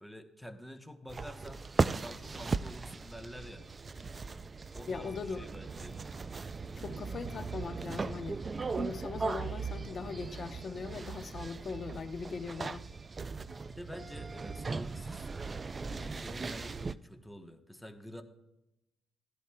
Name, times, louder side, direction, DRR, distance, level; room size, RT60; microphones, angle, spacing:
voice 1, 0.0-1.6 1.9-3.7 4.7-6.0 13.7-15.3 15.8-18.2, equal, ahead, 1.0 m, -48 dB
sound 1, 1.1-16.9, right 4 dB, 30° right, 0.3 m, -38 dB
voice 2, 4.9-5.5 6.8-8.4 8.7-12.9, left 5 dB, 45° left, 0.8 m, -40 dB
15.0 x 11.0 x 2.2 m
cardioid pair, 90°, 0 cm